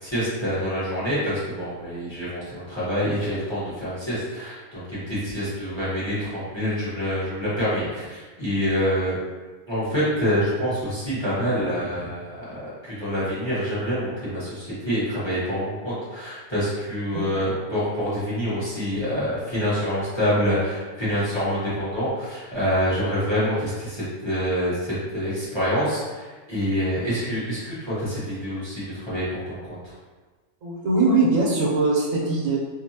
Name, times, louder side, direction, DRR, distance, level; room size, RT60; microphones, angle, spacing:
voice 1, 0.0-9.2 9.7-29.9, equal, 20° left, -11 dB, 1.0 m, -26 dB
voice 2, 17.1-17.6 30.6-32.6, right 3 dB, 75° right, -4 dB, 1.2 m, -22 dB
2.8 x 2.7 x 2.7 m, 1.3 s
omnidirectional pair, 1.4 m